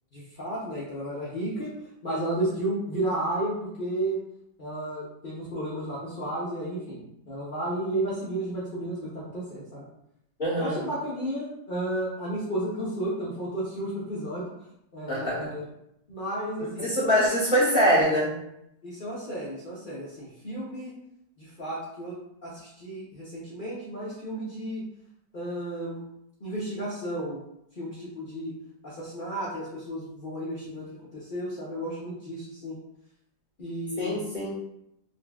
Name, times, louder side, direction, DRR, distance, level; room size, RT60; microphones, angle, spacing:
voice 1, 0.1-1.7 2.0-4.2 4.6-9.9 10.6-14.5 14.9-15.6 16.1-16.9 18.8-21.0 21.4-24.8 25.3-26.0 26.4-27.4 27.7-28.6 28.8-32.8 33.6-34.2, right 1 dB, 55° left, -8 dB, 0.6 m, -33 dB
voice 2, 10.4-10.8 15.1-15.3 16.8-18.3 34.0-34.5, equal, 30° left, -11 dB, 1.3 m, -23 dB
3.9 x 2.7 x 2.3 m, 0.79 s
omnidirectional pair, 1.8 m